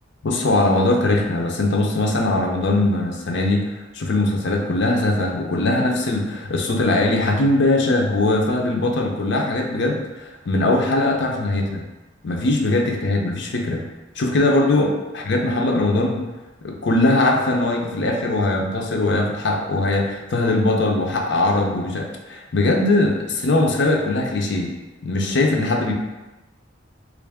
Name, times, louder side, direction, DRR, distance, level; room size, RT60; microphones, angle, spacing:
voice 1, 0.2-11.8 12.2-13.8 14.2-16.2 16.6-24.7 25.0-25.9, left 2 dB, 65° left, 1 dB, 0.5 m, -20 dB
3.2 x 2.5 x 3.4 m, 1.1 s
head